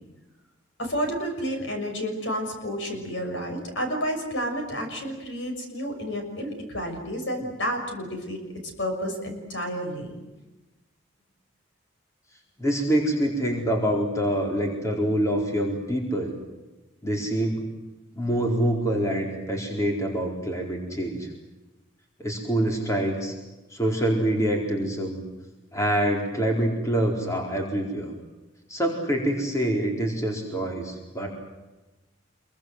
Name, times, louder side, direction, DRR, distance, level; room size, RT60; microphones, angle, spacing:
voice 1, 0.8-8.4 8.8-10.1, equal, 65° left, 4 dB, 6.4 m, -30 dB
voice 2, 12.6-16.3 17.0-17.6 18.2-21.3 22.2-23.3 23.7-25.2 25.7-28.1 28.7-31.3, right 1 dB, 15° left, 1 dB, 4.5 m, -25 dB
27.0 x 23.5 x 8.0 m, 1.1 s
head